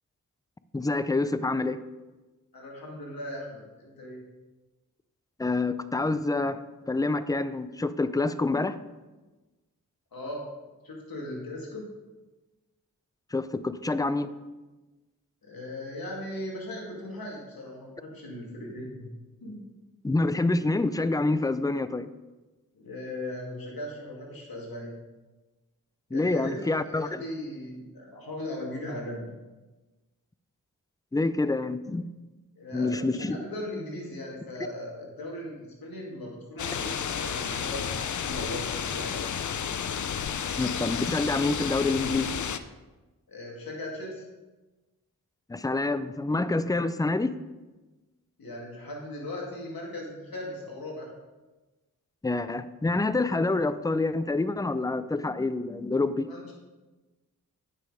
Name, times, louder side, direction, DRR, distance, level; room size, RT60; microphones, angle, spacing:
voice 1, 0.7-1.8 5.4-6.6 6.9-8.8 13.3-14.3 20.0-22.1 26.1-27.2 31.1-32.1 32.7-33.4 40.6-42.3 45.5-47.3 52.2-56.3, left 2 dB, 10° left, 13 dB, 0.5 m, -27 dB
voice 2, 2.5-4.2 10.1-10.4 10.8-11.9 15.4-19.1 19.4-19.6 22.7-24.9 26.1-29.3 32.6-39.2 43.3-44.2 48.4-51.1 56.3-56.5, left 1 dB, 85° left, -2 dB, 2.4 m, -38 dB
sound 1, 36.6-42.6, left 7 dB, 55° left, 0.6 m, -31 dB
9.2 x 6.4 x 4.9 m, 1.2 s
cardioid pair, 55°, 35 cm